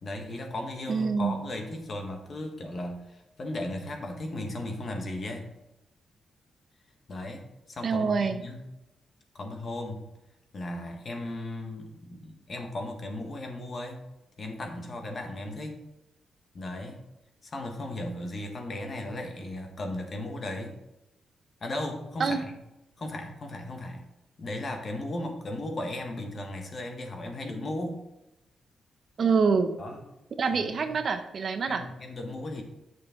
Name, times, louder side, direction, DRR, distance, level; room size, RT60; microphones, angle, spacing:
voice 1, 0.0-5.5 7.1-8.7 9.3-10.0 10.5-14.1 14.4-15.8 16.5-17.0 17.4-20.8 21.6-22.5 23.0-24.0 24.4-28.0 29.8-30.0 30.5-30.9 31.7-32.6, left 1 dB, 40° left, 3 dB, 1.5 m, -36 dB
voice 2, 0.9-1.4 7.8-8.4 22.2-22.4 29.2-29.7 30.4-31.8, right 5 dB, 50° right, 8 dB, 0.7 m, -26 dB
8.5 x 6.4 x 3.7 m, 0.92 s
cardioid pair, 125°, 0 cm